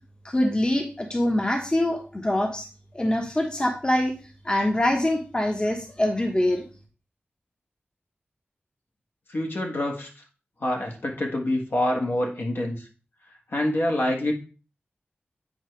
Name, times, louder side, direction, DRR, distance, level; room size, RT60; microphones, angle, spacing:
voice 1, 0.2-2.7 2.9-4.1 4.4-6.6, left 1 dB, 25° left, 3 dB, 1.1 m, -24 dB
voice 2, 9.3-10.1 10.6-12.9 13.5-14.3, left 1 dB, 60° left, 1 dB, 1.5 m, -26 dB
8.7 x 4.7 x 3.2 m, 0.35 s
wide cardioid pair, 100°, 4 cm